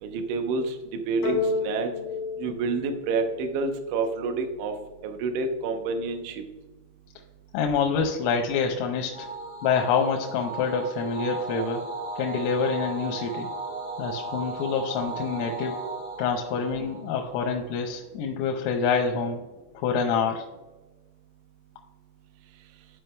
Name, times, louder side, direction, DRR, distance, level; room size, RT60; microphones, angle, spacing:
voice 1, 0.0-1.9 2.4-4.7 5.0-6.4, right 4 dB, 80° right, 5 dB, 2.5 m, -28 dB
sound 1, 1.2-3.8, left 4 dB, 65° left, 1.8 m, -31 dB
voice 2, 7.5-9.3 9.6-11.9 12.2-13.5 14.0-15.7 16.2-19.4 19.7-20.5, left 5 dB, 90° left, 2 dB, 3.4 m, -26 dB
sound 2, 9.1-17.7, right 3 dB, 65° right, 3.7 m, -36 dB
12.5 x 5.1 x 2.2 m, 1.1 s
omnidirectional pair, 5.8 m